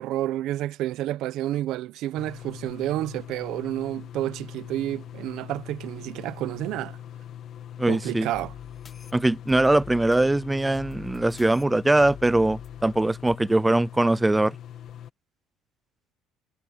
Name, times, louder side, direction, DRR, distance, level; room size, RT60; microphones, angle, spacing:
voice 1, 0.0-7.0 7.9-8.5, right 14 dB, 60° right, 1.1 m, -30 dB
sound 1, 2.2-15.1, left 10 dB, 45° left, 1.9 m, -42 dB
voice 2, 7.8-8.3 9.1-14.5, right 2 dB, 5° right, 0.4 m, -22 dB
sound 2, 8.3-13.4, left 5 dB, 20° left, 1.8 m, -47 dB
cardioid pair, 155°, 0 cm